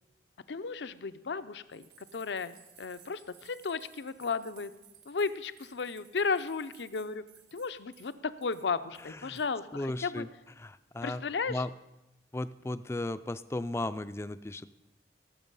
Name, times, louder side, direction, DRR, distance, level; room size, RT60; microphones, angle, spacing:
voice 1, 0.5-4.7 5.1-7.2 7.5-9.7 10.0-10.2 11.0-11.6, left 4 dB, 80° left, 13 dB, 0.6 m, -34 dB
sound 1, 1.7-8.2 8.4-8.6 8.9-9.5, right 8 dB, 65° right, 1.6 m, -59 dB
voice 2, 9.0-9.4 9.7-10.3 10.6-11.2 11.5-11.7 12.3-14.8, left 2 dB, 15° left, 13 dB, 0.4 m, -36 dB
17.5 x 7.3 x 5.5 m, 0.97 s
head